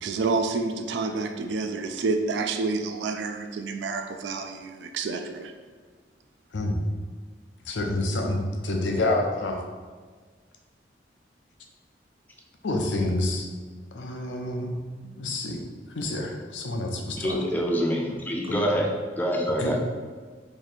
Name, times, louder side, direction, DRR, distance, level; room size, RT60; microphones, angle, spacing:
voice 1, 0.0-5.5, right 3 dB, 75° right, 6 dB, 0.3 m, -29 dB
voice 2, 7.7-9.6 12.6-13.5 13.9-14.8 15.0-15.6 15.9-17.4 18.5-18.7 19.6-19.7, left 2 dB, 85° left, 2 dB, 0.6 m, -28 dB
voice 3, 17.2-19.9, equal, 10° left, 0 dB, 0.4 m, -26 dB
3.1 x 2.6 x 4.0 m, 1.5 s
head